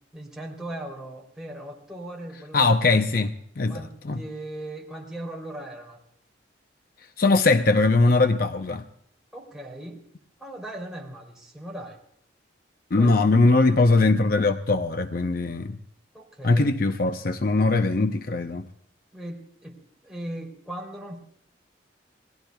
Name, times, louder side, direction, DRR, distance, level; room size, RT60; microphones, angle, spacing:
voice 1, 0.1-2.7 3.7-6.0 9.3-10.0 10.4-12.0 13.0-13.1 16.1-16.8 19.1-21.2, right 1 dB, 5° right, 3.2 m, -38 dB
voice 2, 2.5-4.2 7.2-8.8 12.9-15.8 16.4-18.7, left 3 dB, 50° left, 0.6 m, -21 dB
29.0 x 19.5 x 2.3 m
head